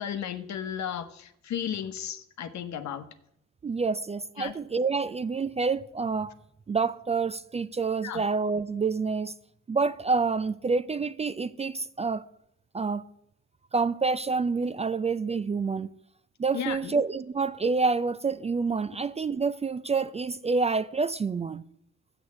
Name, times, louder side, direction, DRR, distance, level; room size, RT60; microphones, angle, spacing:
voice 1, 0.0-3.0 4.4-4.5 8.0-8.2 16.5-16.9, left 9 dB, 65° left, 1.0 m, -34 dB
voice 2, 3.6-6.3 6.7-9.3 9.7-12.3 12.7-13.1 13.7-15.9 16.4-21.6, right 4 dB, 20° right, 0.3 m, -28 dB
7.9 x 6.7 x 7.2 m
cardioid pair, 90°, 30 cm